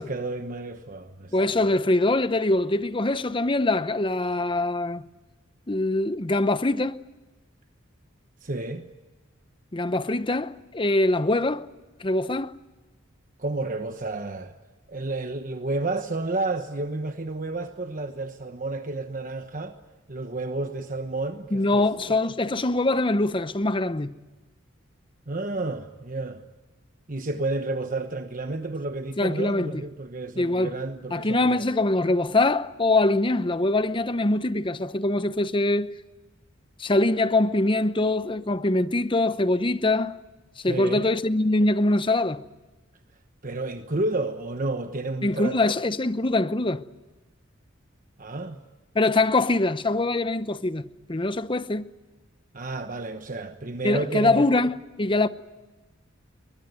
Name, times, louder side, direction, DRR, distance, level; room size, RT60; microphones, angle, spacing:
voice 1, 0.0-1.6 8.4-8.9 13.4-14.5 14.9-19.8 20.1-22.1 25.3-26.4 27.1-31.7 40.7-41.1 43.4-45.6 48.2-48.6 52.5-54.5 55.1-55.2, right 2 dB, 40° right, 1.1 m, -31 dB
voice 2, 1.3-5.0 5.7-7.0 9.7-11.7 12.0-12.5 21.5-24.1 29.2-29.8 30.4-30.7 31.1-35.9 36.8-40.2 40.6-42.4 45.2-46.8 48.9-51.9 53.8-55.3, left 2 dB, 25° left, 0.8 m, -23 dB
22.5 x 21.5 x 9.3 m
head